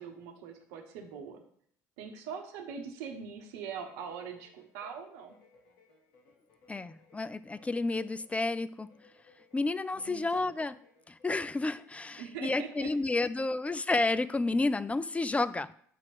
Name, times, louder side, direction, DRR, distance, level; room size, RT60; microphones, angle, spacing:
voice 1, 0.0-1.4 2.0-5.3 9.9-10.5 12.2-12.9, right 6 dB, 75° right, 3 dB, 1.0 m, -42 dB
sound 1, 3.8-12.3, left 3 dB, 70° left, 1.5 m, -64 dB
voice 2, 6.7-8.9 9.5-10.8 11.1-15.8, left 3 dB, 15° left, 15 dB, 0.4 m, -31 dB
7.6 x 3.0 x 5.9 m, 0.63 s
hypercardioid pair, 65°, 9 cm